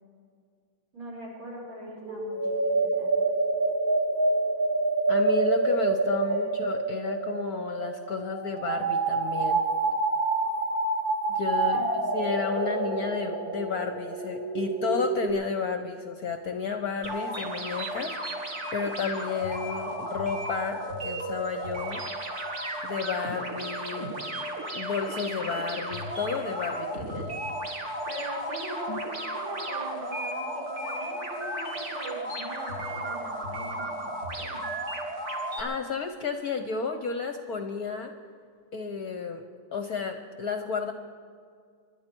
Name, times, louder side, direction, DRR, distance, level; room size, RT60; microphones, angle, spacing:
voice 1, 0.9-2.4 2.7-3.2 6.2-6.5 11.7-11.9 28.1-34.6, equal, 75° right, -4 dB, 5.7 m, -41 dB
sound 1, 2.0-15.3, right 3 dB, 60° right, 3.7 m, -27 dB
voice 2, 5.1-9.6 11.3-22.0 22.8-24.1 24.7-27.4 35.6-38.1 38.7-39.4 39.7-40.9, left 5 dB, 60° left, 6 dB, 1.0 m, -32 dB
sound 2, 17.0-35.6, right 1 dB, 35° right, 2.1 m, -34 dB
26.0 x 12.0 x 4.5 m, 2.1 s
omnidirectional pair, 2.4 m